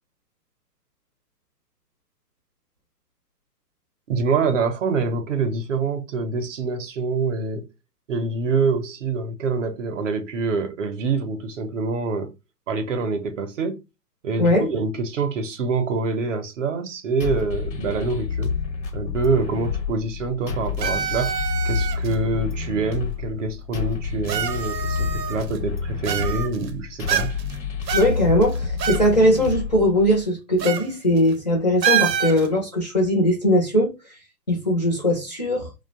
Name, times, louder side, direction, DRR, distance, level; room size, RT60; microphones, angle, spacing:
voice 1, 4.1-7.7 8.1-12.3 12.7-13.8 14.2-18.5 18.9-21.3 21.6-27.3, right 4 dB, 50° right, 0.6 m, -25 dB
sound 1, 17.2-30.2, left 5 dB, 90° left, 1.0 m, -29 dB
sound 2, 20.8-22.1 23.1-23.2 24.3-25.6 26.0-26.7 27.1-27.5 27.9-29.1 29.3-29.4 30.6-30.9 31.2-31.3 31.8-32.5, right 9 dB, 90° right, 0.6 m, -26 dB
voice 2, 27.9-33.9 34.5-35.7, left 1 dB, 30° left, 0.4 m, -20 dB
2.7 x 2.1 x 2.5 m
hypercardioid pair, 145°, 49 cm